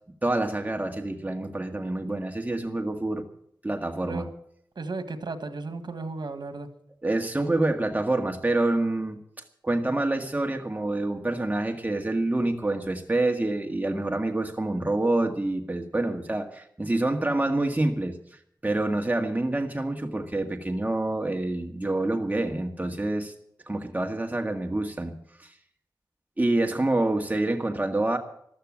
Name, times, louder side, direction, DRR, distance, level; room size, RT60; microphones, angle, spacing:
voice 1, 0.2-3.2 3.6-4.3 7.0-9.2 9.6-18.2 18.6-23.3 23.7-25.1 25.4-25.5 26.4-28.2, right 2 dB, 20° right, 4 dB, 1.8 m, -27 dB
voice 2, 4.7-6.7, right 3 dB, 80° right, 9 dB, 1.7 m, -34 dB
15.0 x 12.5 x 6.4 m, 0.68 s
wide cardioid pair, 65°, 7 cm